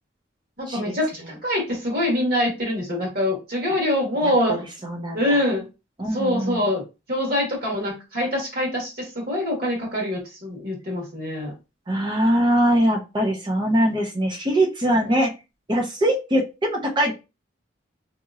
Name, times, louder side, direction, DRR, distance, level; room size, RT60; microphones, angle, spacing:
voice 1, 0.6-4.5 5.1-5.7 6.1-6.8 7.1-11.5, left 1 dB, 50° right, -1 dB, 1.4 m, -24 dB
voice 2, 4.2-4.6 4.8-5.4 6.0-6.6 11.9-15.3 15.7-17.1, equal, 25° right, 1 dB, 0.6 m, -22 dB
2.9 x 2.9 x 2.4 m, 0.28 s
head